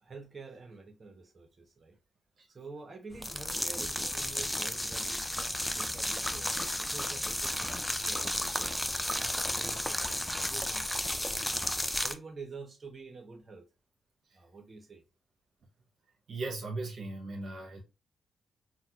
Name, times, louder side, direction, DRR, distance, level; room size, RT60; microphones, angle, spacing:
voice 1, 0.0-2.0 2.5-10.9 11.5-13.6 14.3-15.0, right 4 dB, 40° right, 0.9 m, -48 dB
sound 1, 3.1-12.1, left 1 dB, 10° left, 0.4 m, -33 dB
voice 2, 16.3-17.8, right 3 dB, 65° right, 0.8 m, -38 dB
4.0 x 2.2 x 2.3 m
supercardioid pair, 45°, 0 cm